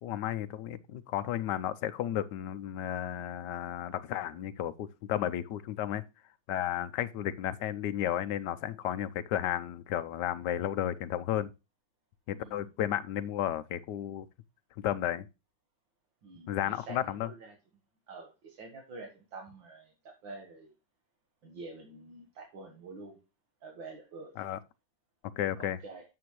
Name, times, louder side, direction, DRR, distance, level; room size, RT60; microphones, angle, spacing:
voice 1, 0.0-6.0 6.5-11.5 12.3-14.3 14.8-15.3 16.5-17.3 24.4-24.6 25.4-25.8, left 11 dB, 70° left, 1.2 m, -33 dB
voice 2, 16.2-17.5 18.1-20.7 21.4-23.2 23.6-24.4 25.6-26.0, right 3 dB, 75° right, 2.2 m, -47 dB
9.4 x 7.0 x 3.1 m
omnidirectional pair, 2.1 m